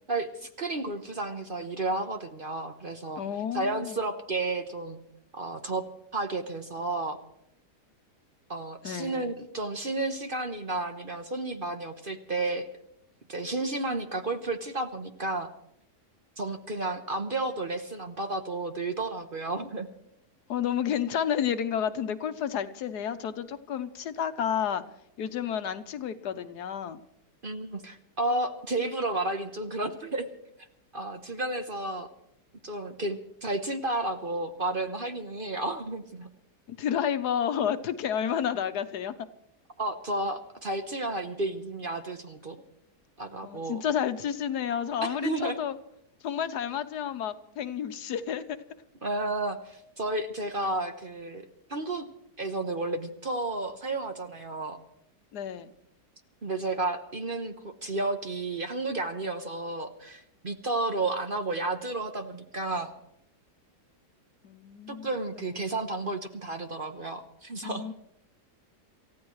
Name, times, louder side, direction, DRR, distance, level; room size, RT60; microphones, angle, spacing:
voice 1, 0.1-3.2 3.5-5.0 5.3-5.8 6.1-7.2 8.5-12.7 13.3-15.5 16.4-19.9 27.4-30.3 30.9-32.1 32.6-36.3 39.8-42.6 43.2-43.8 45.0-45.6 49.0-51.4 51.7-52.0 52.4-54.8 56.4-57.5 57.8-62.9 64.9-67.9, right 2 dB, 40° right, 6 dB, 1.1 m, -32 dB
voice 2, 3.2-4.0 8.8-9.3 20.5-24.8 25.2-27.0 36.7-39.1 43.4-45.7 46.2-48.4 55.3-55.7 64.4-65.5 67.6-67.9, left 8 dB, 75° left, 11 dB, 1.4 m, -31 dB
27.5 x 15.0 x 3.2 m, 0.77 s
omnidirectional pair, 1.8 m